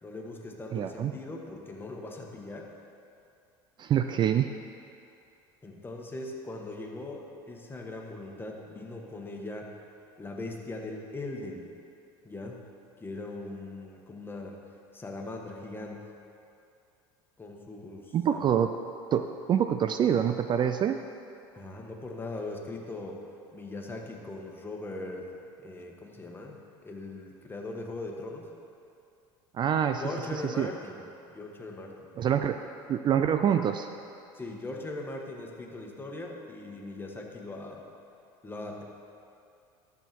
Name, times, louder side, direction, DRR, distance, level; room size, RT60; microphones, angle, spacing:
voice 1, 0.0-2.7 5.6-9.7 10.2-11.8 12.2-12.6 13.0-14.6 14.9-16.1 17.4-18.6 21.5-23.2 23.5-25.3 25.6-28.5 30.0-32.1 34.3-37.8 38.4-38.8, left 2 dB, 15° left, 1 dB, 1.5 m, -40 dB
voice 2, 0.7-1.1 3.8-4.5 18.1-18.7 19.1-21.0 29.5-30.0 30.6-30.7 32.2-32.6 32.9-33.9, right 9 dB, 40° right, 8 dB, 0.4 m, -26 dB
12.0 x 7.1 x 4.6 m, 2.6 s
supercardioid pair, 90°, 12 cm